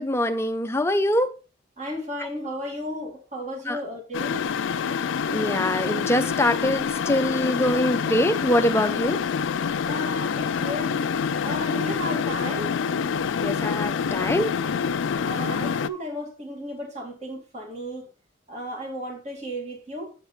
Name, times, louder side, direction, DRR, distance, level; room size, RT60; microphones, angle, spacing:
voice 1, 0.0-1.3 3.7-3.8 5.3-9.2 13.4-14.5, left 1 dB, 15° left, 0.5 m, -24 dB
voice 2, 1.8-4.5 9.8-11.0 11.4-12.7 15.2-18.1 18.5-20.1, equal, 35° right, 2.1 m, -34 dB
sound 1, 4.1-15.9, left 6 dB, 70° left, 0.3 m, -26 dB
8.1 x 7.9 x 3.2 m
head